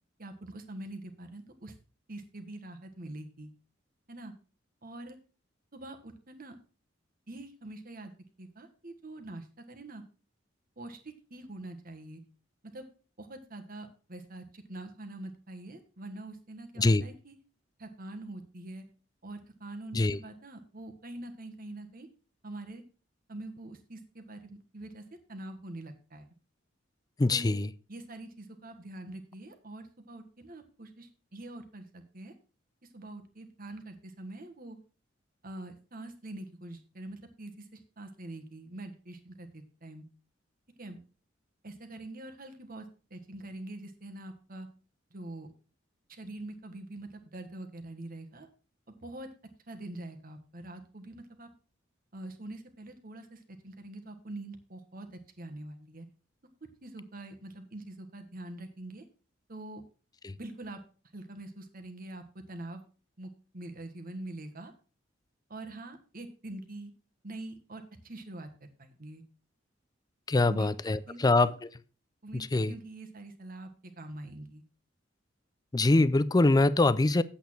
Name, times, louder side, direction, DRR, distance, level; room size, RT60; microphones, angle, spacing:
voice 1, 0.2-1.7 2.1-3.5 4.1-4.3 4.8-5.2 5.7-6.5 7.3-8.1 8.4-10.0 10.8-12.2 12.7-12.8 13.2-17.3 17.8-18.8 19.2-22.1 22.4-22.8 23.3-25.0 25.3-26.3 27.3-27.5 27.9-32.3 32.9-34.8 35.4-40.0 40.8-41.0 41.6-44.7 45.1-45.5 46.1-48.5 49.0-49.3 49.7-51.5 52.1-56.1 56.8-59.0 59.5-59.8 60.4-60.8 61.1-62.8 63.2-64.7 65.5-66.9 67.2-69.2 70.3-71.5 72.2-73.7 73.9-74.6, right 2 dB, 50° right, 1.5 m, -44 dB
voice 2, 27.2-27.7 60.2-60.3 70.3-71.5 72.3-72.7 75.7-77.2, left 2 dB, 20° left, 0.4 m, -24 dB
8.6 x 8.1 x 4.5 m
head